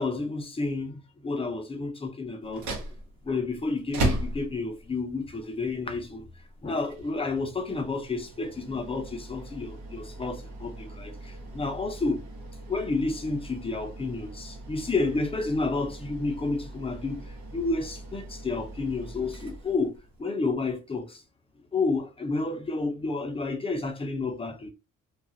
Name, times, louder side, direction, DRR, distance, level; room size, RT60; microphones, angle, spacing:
voice 1, 0.0-2.7 3.2-6.3 6.6-12.2 12.7-19.9 20.2-21.2 21.7-24.7, left 3 dB, 20° left, 0.6 m, -30 dB
sound 1, 2.4-20.2, right 2 dB, 70° right, 0.9 m, -38 dB
2.4 x 2.3 x 2.6 m
cardioid pair, 90°, 30 cm